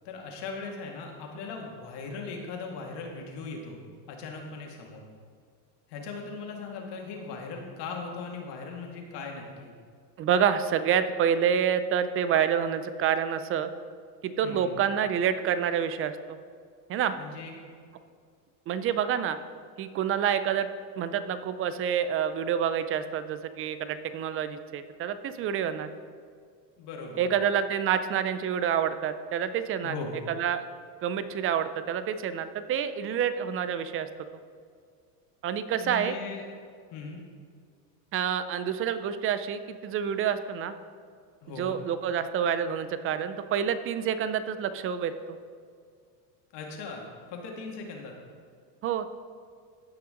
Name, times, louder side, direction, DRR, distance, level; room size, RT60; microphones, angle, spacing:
voice 1, 0.0-3.8 4.1-5.0 5.9-9.7 14.4-14.8 17.2-17.5 26.8-27.3 29.8-30.2 35.8-36.5 36.9-37.2 41.4-41.8 46.5-47.0 47.3-48.1, left 4 dB, 55° left, 1 dB, 2.1 m, -39 dB
voice 2, 10.2-13.7 14.2-16.1 16.9-17.2 18.7-19.4 19.8-20.7 21.0-25.9 27.2-29.9 30.4-30.6 31.0-34.1 35.4-36.1 38.1-40.7 41.6-45.1 48.8-49.1, right 8 dB, 30° right, 12 dB, 0.4 m, -28 dB
15.5 x 5.7 x 3.8 m, 2.1 s
supercardioid pair, 120°, 49 cm